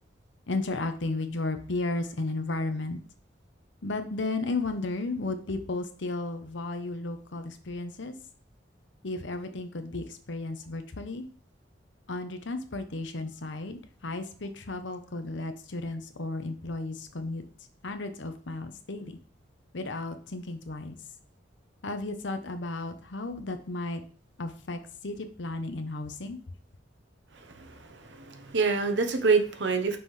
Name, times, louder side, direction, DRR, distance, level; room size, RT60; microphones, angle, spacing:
voice 1, 0.5-3.0 3.8-8.1 9.0-11.3 12.1-17.4 17.8-19.2 19.7-21.0 21.8-24.0 24.4-26.4, left 2 dB, 70° left, 8 dB, 0.9 m, -34 dB
voice 2, 27.3-30.0, right 4 dB, 65° right, 6 dB, 0.9 m, -27 dB
6.0 x 5.6 x 3.2 m, 0.43 s
head